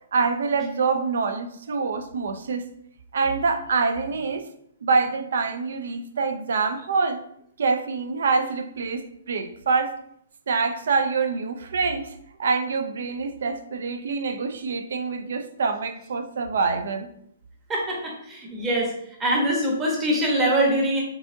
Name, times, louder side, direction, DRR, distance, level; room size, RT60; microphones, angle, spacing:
voice 1, 0.1-2.6 3.1-4.4 4.8-7.2 7.6-9.9 10.5-12.1 12.4-17.1, right 4 dB, 70° right, 8 dB, 0.5 m, -25 dB
voice 2, 17.7-18.9 19.2-21.0, right 1 dB, 15° right, -2 dB, 0.9 m, -23 dB
4.6 x 2.7 x 2.6 m, 0.72 s
hypercardioid pair, 165°, 0 cm